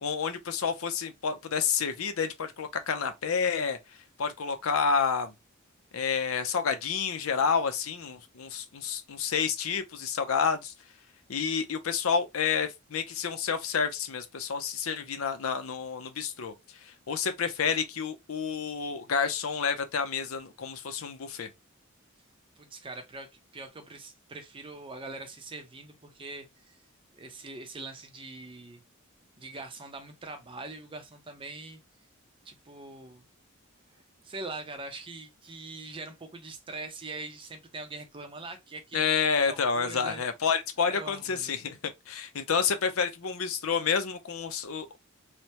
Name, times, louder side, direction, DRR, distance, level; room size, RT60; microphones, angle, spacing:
voice 1, 0.0-3.8 4.2-5.3 5.9-10.7 11.3-16.5 16.8-21.5 38.9-45.0, left 6 dB, 75° left, 0.5 m, -29 dB
voice 2, 22.6-26.8 27.1-28.8 29.4-31.8 32.4-33.3 34.2-39.1 39.5-40.2 40.8-41.6, right 3 dB, 25° right, 0.5 m, -42 dB
3.3 x 2.0 x 2.8 m
head